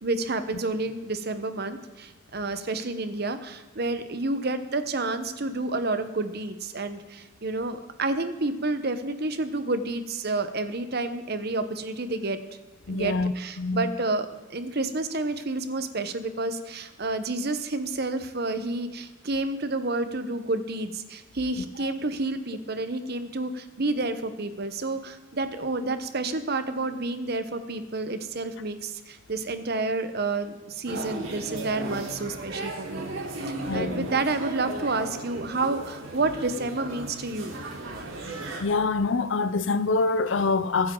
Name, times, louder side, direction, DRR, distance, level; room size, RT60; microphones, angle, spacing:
voice 1, 0.0-12.4 12.9-33.1 33.5-37.6, right 2 dB, 50° right, 1.0 m, -30 dB
voice 2, 12.9-13.3 13.6-13.8 21.8-21.9 33.7-34.1 38.6-40.9, left 3 dB, 65° left, 0.6 m, -25 dB
sound 1, 30.8-38.6, right 2 dB, 80° right, 3.6 m, -35 dB
23.0 x 9.8 x 3.9 m
head